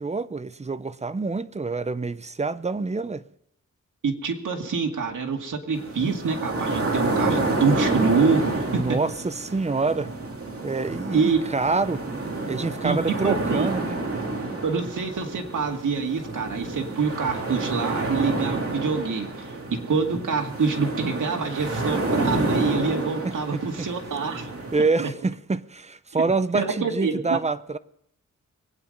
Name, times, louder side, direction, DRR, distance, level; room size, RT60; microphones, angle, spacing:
voice 1, 0.0-3.2 8.7-10.1 10.6-14.0 23.2-23.9 24.7-27.8, right 3 dB, 20° right, 0.6 m, -27 dB
voice 2, 4.0-8.8 11.1-11.4 12.8-13.0 13.2-13.7 14.6-24.5 25.0-25.1 26.5-27.4, right 5 dB, 85° right, 2.2 m, -26 dB
sound 1, 5.7-24.8, right 2 dB, 50° right, 2.7 m, -29 dB
23.5 x 9.4 x 5.3 m
wide cardioid pair, 120°, 30 cm